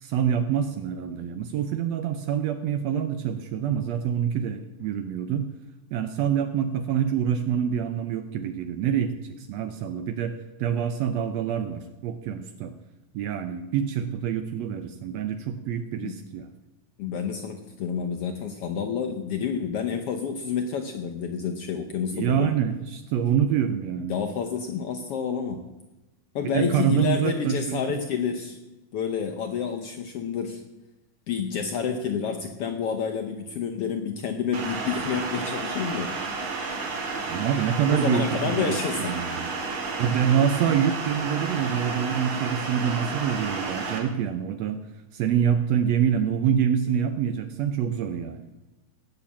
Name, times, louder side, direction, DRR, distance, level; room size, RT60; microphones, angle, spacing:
voice 1, 0.0-5.5 5.9-10.3 10.6-12.7 13.1-16.5 22.1-24.1 26.5-28.0 37.3-39.5 40.0-44.8 45.1-48.4, right 8 dB, 75° right, 9 dB, 1.6 m, -26 dB
voice 2, 17.0-22.5 24.1-25.7 26.3-28.6 28.9-30.6 31.3-36.1 37.9-39.2, left 6 dB, 70° left, 4 dB, 1.4 m, -29 dB
sound 1, 34.5-44.0, right 4 dB, 45° right, 2.6 m, -31 dB
17.5 x 6.7 x 7.2 m, 1.0 s
omnidirectional pair, 3.5 m